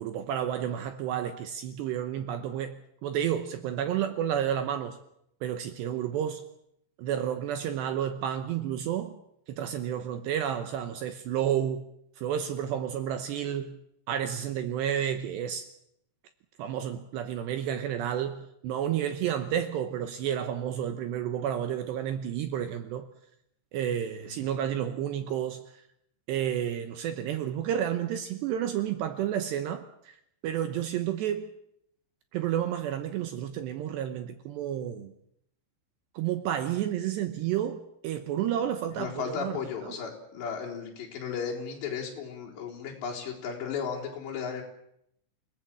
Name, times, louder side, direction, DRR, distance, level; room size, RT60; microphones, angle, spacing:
voice 1, 0.0-5.0 5.4-6.4 7.0-9.1 9.5-11.9 12.2-13.8 14.1-15.7 16.6-23.1 23.7-25.8 26.3-30.2 30.4-31.5 32.3-35.1 36.1-39.6 39.8-40.0, right 10 dB, 75° right, 2.8 m, -31 dB
voice 2, 39.0-44.6, left 6 dB, 60° left, 6.1 m, -35 dB
28.0 x 18.5 x 7.6 m
omnidirectional pair, 5.8 m